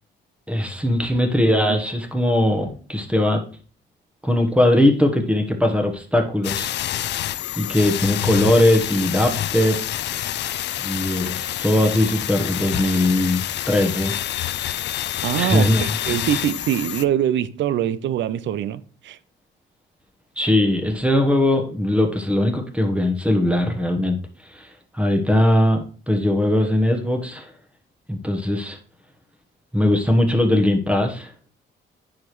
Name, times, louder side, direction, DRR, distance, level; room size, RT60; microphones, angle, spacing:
voice 1, 0.5-3.4 4.2-6.7 7.6-9.8 10.8-14.1 15.3-15.8 20.4-24.2 24.5-24.7 24.9-27.5 28.1-28.8 29.7-31.3, left 1 dB, 5° right, 1.1 m, -20 dB
sound 1, 6.4-17.0, left 12 dB, 60° left, 0.4 m, -27 dB
voice 2, 15.2-19.2, right 11 dB, 70° right, 0.5 m, -23 dB
9.4 x 5.0 x 3.1 m
cardioid pair, 90°, 20 cm